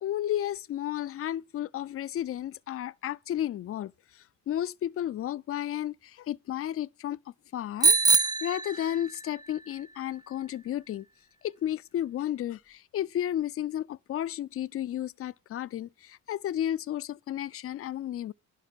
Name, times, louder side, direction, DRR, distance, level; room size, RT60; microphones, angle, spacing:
voice 1, 0.0-3.9 4.5-7.2 7.5-11.0 11.4-18.3, left 11 dB, 50° left, 0.5 m, -33 dB
Bicycle bell, 7.8-9.4, right 4 dB, 15° right, 0.5 m, -24 dB
11.0 x 5.3 x 5.8 m
cardioid pair, 90°, 30 cm